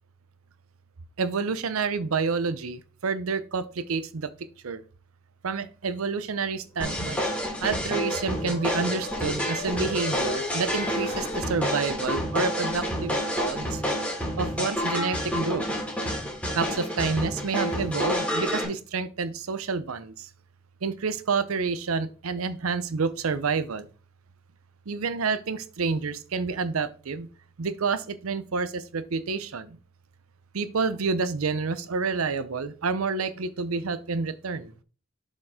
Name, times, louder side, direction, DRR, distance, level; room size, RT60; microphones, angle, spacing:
voice 1, 1.2-4.3 4.6-4.8 5.4-7.2 7.6-13.8 14.4-15.6 16.5-20.3 20.8-23.9 24.9-27.3 27.6-29.8 30.5-34.7, right 4 dB, 90° right, 14 dB, 0.6 m, -29 dB
sound 1, 6.7-11.4, left 1 dB, 30° left, 3.2 m, -37 dB
sound 2, 6.8-18.6, equal, 5° left, 2.6 m, -29 dB
7.3 x 5.3 x 3.6 m, 0.38 s
head